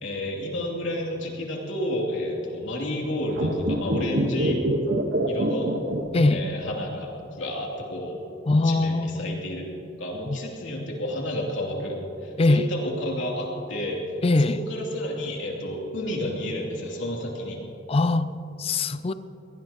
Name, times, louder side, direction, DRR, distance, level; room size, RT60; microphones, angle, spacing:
voice 1, 0.0-4.6 5.3-5.7 6.3-8.2 8.6-14.0 14.4-17.7, left 1 dB, 85° left, -2 dB, 3.0 m, -31 dB
sound 1, 3.3-6.7 7.0-7.1, right 1 dB, 65° right, 1.3 m, -25 dB
voice 2, 8.5-9.4 10.3-10.4 12.4-12.7 14.2-14.6 17.9-18.3 18.6-19.1, left 2 dB, 30° left, 13 dB, 0.4 m, -22 dB
23.0 x 18.5 x 3.0 m, 2.9 s
head